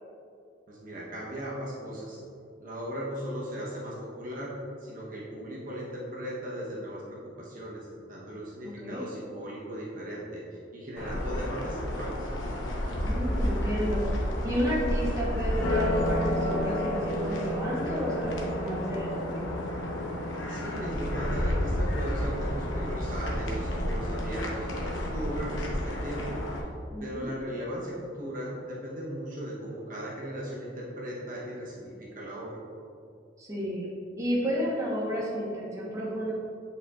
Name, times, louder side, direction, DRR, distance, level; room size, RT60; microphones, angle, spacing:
voice 1, 0.7-2.2 2.6-12.3 20.5-26.4 27.0-32.6, right 1 dB, 45° right, -5 dB, 1.0 m, -37 dB
sound 1, 11.0-26.6, left 1 dB, 85° left, 0.9 m, -30 dB
voice 2, 13.0-14.1 14.4-19.4 26.9-27.3 33.4-33.9 34.2-36.3, equal, 15° right, -6 dB, 1.1 m, -31 dB
8.6 x 5.1 x 2.4 m, 2.4 s
head